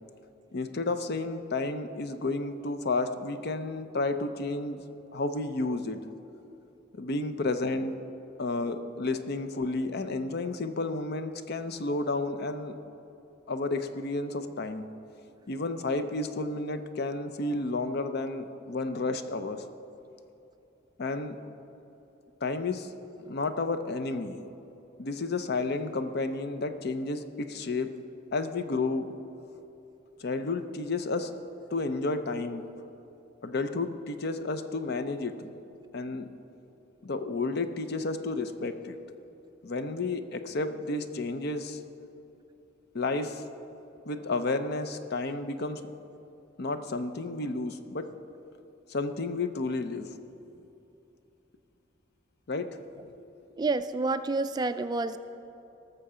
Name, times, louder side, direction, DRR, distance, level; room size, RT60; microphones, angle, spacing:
voice 1, 0.5-4.8 5.1-6.0 6.9-7.9 8.4-12.8 13.5-14.9 15.5-19.6 21.0-21.4 22.4-22.9 23.3-24.4 25.0-27.9 28.3-29.1 30.2-31.4 31.7-32.6 33.4-35.3 35.9-36.3 37.0-39.0 39.6-41.8 42.9-43.4 44.0-45.8 46.6-48.1 48.9-50.1 52.5-52.7, left 3 dB, 55° left, 9 dB, 0.6 m, -31 dB
voice 2, 53.6-55.2, right 3 dB, 20° right, 11 dB, 0.3 m, -28 dB
19.0 x 6.8 x 5.0 m, 2.9 s
head